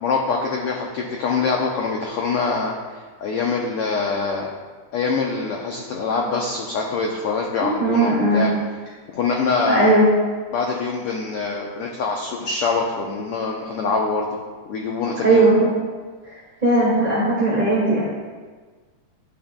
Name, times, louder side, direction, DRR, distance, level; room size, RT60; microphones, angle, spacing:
voice 1, 0.0-4.5 4.9-8.5 9.1-9.9 10.5-14.3 14.7-15.5, left 4 dB, 90° left, 0 dB, 1.3 m, -24 dB
voice 2, 7.6-8.5 9.7-10.1 15.2-15.7 16.6-18.0, right 2 dB, 20° right, -9 dB, 1.5 m, -17 dB
11.5 x 7.8 x 2.2 m, 1.4 s
omnidirectional pair, 3.5 m